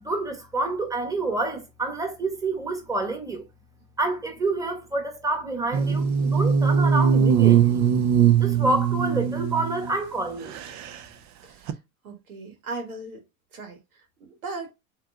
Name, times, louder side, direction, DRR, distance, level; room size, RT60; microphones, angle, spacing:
voice 1, 0.0-3.4 4.0-7.8 8.4-10.5, right 2 dB, 10° right, 1.7 m, -28 dB
sound 1, 5.7-9.9 10.5-10.9 11.7-11.8, right 7 dB, 40° right, 0.8 m, -21 dB
voice 2, 11.4-11.8 12.0-13.2 13.5-14.7, right 3 dB, 80° right, 2.0 m, -38 dB
7.4 x 3.1 x 2.3 m
hypercardioid pair, 85°, 43 cm